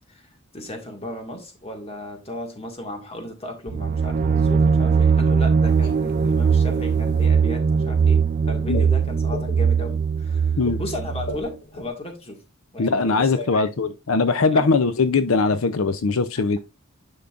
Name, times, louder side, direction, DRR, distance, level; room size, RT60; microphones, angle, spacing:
voice 1, 0.0-12.4 12.7-13.7 14.5-14.6, left 1 dB, 30° left, 1.9 m, -35 dB
sound 1, 3.7-11.4, right 6 dB, 40° right, 0.3 m, -20 dB
sound 2, 5.6-11.9, left 1 dB, 50° left, 1.3 m, -38 dB
voice 2, 12.8-16.6, left 4 dB, 80° left, 0.6 m, -21 dB
10.5 x 5.5 x 2.5 m
head